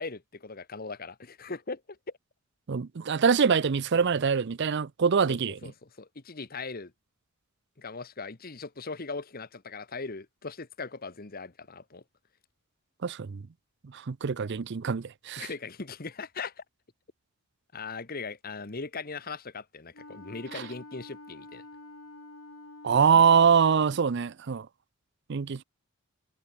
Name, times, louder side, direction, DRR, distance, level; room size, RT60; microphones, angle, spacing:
voice 1, 0.0-2.0 5.3-6.9 7.8-12.0 15.4-16.6 17.7-21.6 23.1-23.2, left 4 dB, 45° left, 1.3 m, -39 dB
voice 2, 2.7-5.6 13.0-13.5 13.8-15.5 20.5-20.6 22.8-24.7 25.3-25.6, right 6 dB, 55° right, 0.5 m, -24 dB
Wind instrument woodwind instrument, 19.9-24.2, left 2 dB, 85° left, 3.6 m, -48 dB
head